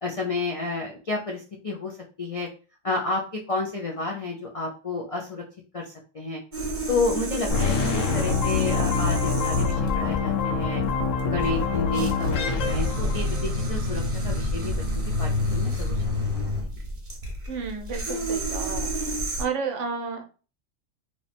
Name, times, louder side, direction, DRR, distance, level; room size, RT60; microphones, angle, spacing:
voice 1, 0.0-2.5 2.8-5.4 5.7-6.4 6.9-10.8 11.2-14.8 15.2-16.7, left 3 dB, 55° left, -1 dB, 0.4 m, -31 dB
sound 1, 6.5-19.4, equal, 40° right, 1.0 m, -29 dB
sound 2, 7.5-13.7, left 5 dB, 75° left, 1.0 m, -25 dB
voice 2, 17.5-19.1 19.4-20.2, right 5 dB, 70° right, 4 dB, 1.0 m, -32 dB
3.0 x 2.1 x 4.0 m, 0.35 s
omnidirectional pair, 1.3 m